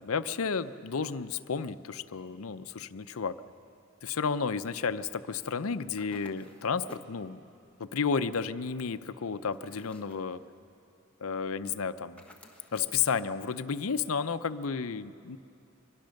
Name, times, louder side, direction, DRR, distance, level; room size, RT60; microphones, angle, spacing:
voice 1, 0.0-3.4 4.0-7.4 7.8-10.4 11.2-12.2 12.7-15.4, left 5 dB, 80° left, 11 dB, 0.6 m, -32 dB
sound 1, 6.0-7.2 9.5-10.3 12.2-13.0, left 2 dB, 5° left, 1.3 m, -54 dB
24.0 x 21.0 x 6.5 m, 2.6 s
head